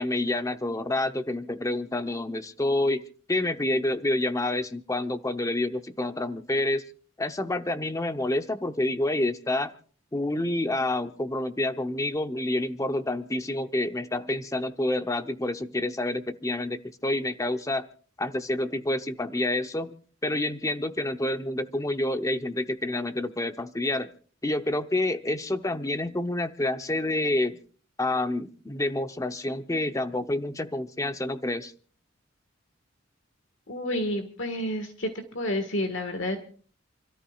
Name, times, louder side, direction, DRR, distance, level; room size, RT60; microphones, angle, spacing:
voice 1, 0.0-3.0 3.3-6.8 7.2-9.7 10.1-17.9 18.2-20.0 20.2-24.1 24.4-27.6 28.0-31.7, left 1 dB, 15° left, 9 dB, 0.7 m, -28 dB
voice 2, 33.7-35.1 35.3-36.4, left 1 dB, 70° left, 7 dB, 1.7 m, -29 dB
29.0 x 13.5 x 2.4 m, 0.43 s
head